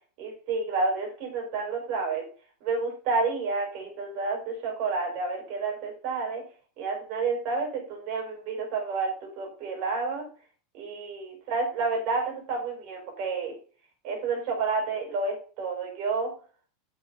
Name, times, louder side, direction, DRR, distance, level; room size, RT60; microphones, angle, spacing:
voice 1, 0.2-2.2 2.6-6.4 6.8-10.3 10.7-13.5 14.0-16.3, right 4 dB, 45° right, 0 dB, 4.7 m, -30 dB
6.8 x 6.7 x 5.5 m, 0.41 s
supercardioid pair, 155°, 0 cm